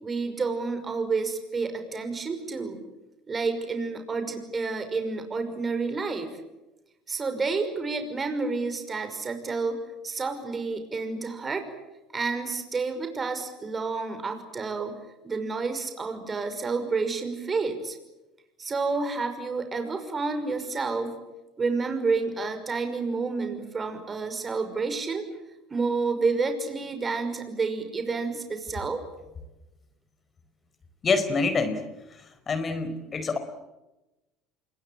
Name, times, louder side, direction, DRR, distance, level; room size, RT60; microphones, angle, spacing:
voice 1, 0.0-2.8 3.3-6.3 7.1-11.7 12.1-15.0 15.2-18.0 18.6-21.2 21.6-25.3 25.7-29.0, right 4 dB, 25° right, 7 dB, 5.7 m, -29 dB
voice 2, 31.0-31.8 32.1-33.4, left 4 dB, 35° left, 10 dB, 4.7 m, -26 dB
27.0 x 23.0 x 8.7 m, 1.0 s
hypercardioid pair, 75°, 0 cm